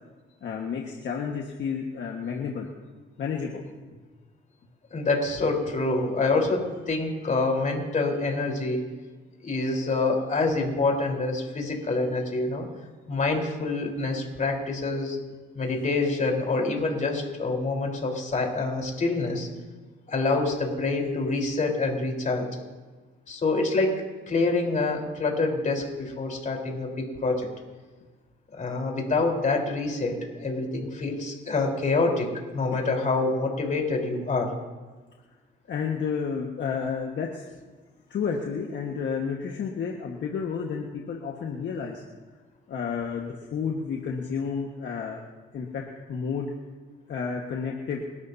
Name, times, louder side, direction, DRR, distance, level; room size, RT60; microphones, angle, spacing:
voice 1, 0.4-2.7 3.2-3.6 3.9-4.0 32.7-32.8 35.7-37.5 38.1-42.0 42.7-45.2 45.5-46.5 47.1-48.0, left 6 dB, 65° left, 0 dB, 1.6 m, -31 dB
voice 2, 4.9-8.9 9.4-12.7 13.1-15.2 15.5-19.5 20.1-22.5 23.3-27.5 28.5-34.5, left 3 dB, 40° left, 1 dB, 4.2 m, -26 dB
30.0 x 13.0 x 2.8 m, 1.3 s
cardioid pair, 90°, 20 cm